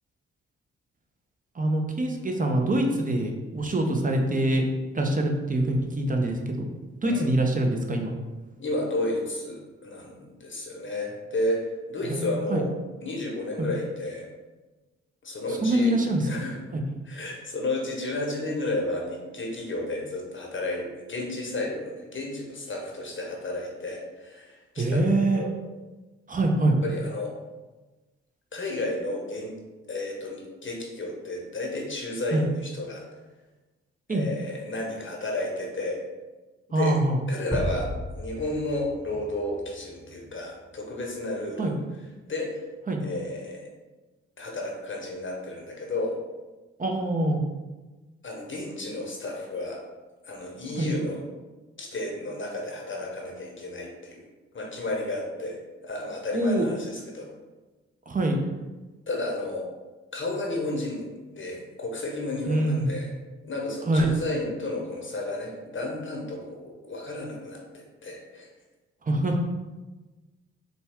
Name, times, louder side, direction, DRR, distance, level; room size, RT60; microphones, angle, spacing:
voice 1, 1.5-4.7 4.9-6.6 7.0-8.1 12.0-12.6 13.6-13.7 15.5-16.3 16.7-16.8 24.8-25.4 26.3-26.8 32.3-32.4 34.1-34.2 36.7-37.2 41.6-41.8 42.9-43.0 46.8-47.4 50.8-50.9 56.3-56.7 58.1-58.4 62.5-62.9 63.9-64.1 69.0-69.4, right 1 dB, 25° right, 2 dB, 0.7 m, -24 dB
voice 2, 8.6-12.7 13.0-14.3 15.2-16.0 16.3-16.6 17.1-25.0 25.3-25.6 26.8-27.3 28.5-29.5 29.9-33.0 34.1-36.0 36.7-37.0 37.3-37.9 38.2-41.8 42.3-42.6 43.0-43.7 44.4-46.1 48.2-49.8 50.2-51.2 51.8-54.3 54.5-57.3 59.1-59.7 60.1-61.1 61.3-63.1 63.4-68.5, left 2 dB, 40° left, -1 dB, 0.9 m, -32 dB
sound 1, 37.5-40.4, equal, 5° right, 1.1 m, -34 dB
4.0 x 2.2 x 3.5 m, 1.2 s
hypercardioid pair, 45°, 30 cm